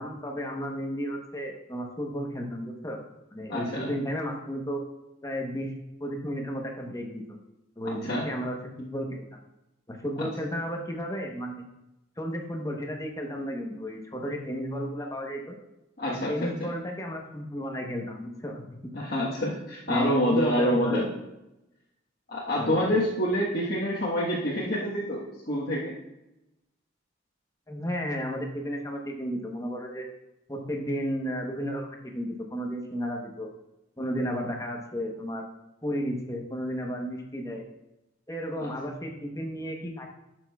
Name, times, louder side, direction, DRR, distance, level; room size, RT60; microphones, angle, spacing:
voice 1, 0.0-3.0 3.3-4.8 5.2-5.7 6.0-7.4 7.8-9.4 9.9-11.6 12.2-15.6 16.1-18.7 19.9-21.0 22.6-22.9 27.7-30.0 30.5-33.5 34.0-35.4 35.8-37.6 38.3-40.1, equal, 15° left, 1 dB, 0.9 m, -33 dB
voice 2, 3.5-3.9 7.8-8.3 10.2-10.3 16.0-16.7 18.9-21.1 22.3-26.0, equal, 55° left, -7 dB, 1.3 m, -27 dB
12.0 x 6.1 x 2.3 m, 0.92 s
head